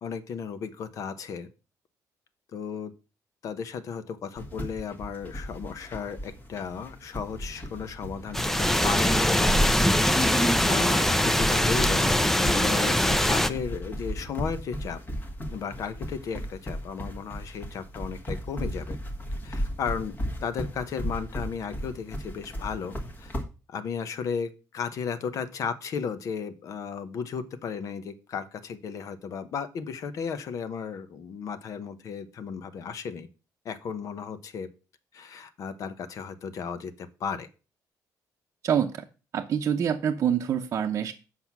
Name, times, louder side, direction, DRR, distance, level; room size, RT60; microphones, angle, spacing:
voice 1, 0.0-1.5 2.5-2.9 3.4-9.6 10.6-15.0 15.5-19.0 19.4-20.1 20.4-23.3 23.7-33.3 33.6-34.7 35.1-37.5, left 6 dB, 55° left, 12 dB, 0.9 m, -35 dB
sound 1, 4.4-23.4, equal, 25° left, 1.5 m, -36 dB
sound 2, 8.3-13.5, left 1 dB, 5° left, 0.5 m, -22 dB
voice 2, 38.6-39.0 39.3-41.1, right 8 dB, 45° right, 1 dB, 0.7 m, -26 dB
7.8 x 5.7 x 5.9 m, 0.33 s
cardioid pair, 160°, 7 cm